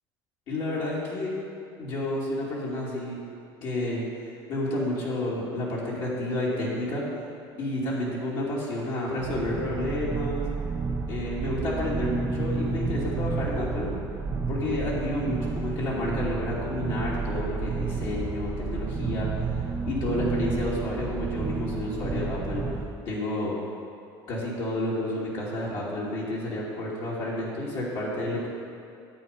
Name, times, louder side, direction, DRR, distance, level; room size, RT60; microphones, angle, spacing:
voice 1, 0.5-1.3 1.8-3.2 3.6-4.0 4.5-7.0 7.6-10.4 11.1-13.9 14.5-19.6 19.8-23.5 24.3-28.5, left 1 dB, 55° left, -6 dB, 2.7 m, -30 dB
sound 1, 9.2-22.9, right 4 dB, 20° right, 0.7 m, -31 dB
10.5 x 8.4 x 5.4 m, 2.5 s
cardioid pair, 125°, 10 cm